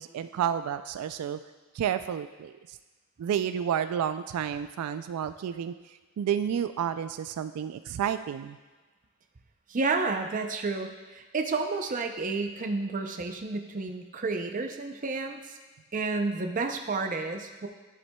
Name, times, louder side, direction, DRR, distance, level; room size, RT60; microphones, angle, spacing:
voice 1, 0.0-1.4 1.7-2.5 3.2-5.7 6.2-8.6, right 9 dB, 90° right, 11 dB, 0.3 m, -30 dB
voice 2, 9.7-15.6 15.9-17.7, right 3 dB, 35° right, 6 dB, 0.5 m, -31 dB
11.0 x 7.2 x 2.2 m, 1.2 s
head